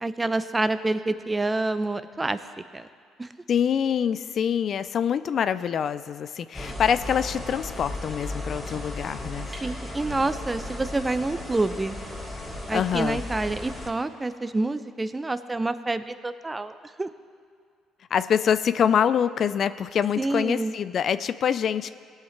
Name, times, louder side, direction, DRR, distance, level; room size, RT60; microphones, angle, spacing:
voice 1, 0.0-2.4 2.7-2.9 3.2-3.3 9.6-12.0 12.7-17.1 20.2-20.7, right 2 dB, 20° right, 12 dB, 0.5 m, -27 dB
voice 2, 3.5-9.5 12.7-13.2 18.1-21.9, left 8 dB, 55° left, 14 dB, 0.3 m, -25 dB
sound 1, 6.5-13.9, left 1 dB, 10° left, 2.5 m, -35 dB
17.0 x 5.8 x 4.4 m, 2.2 s
supercardioid pair, 75°, 0 cm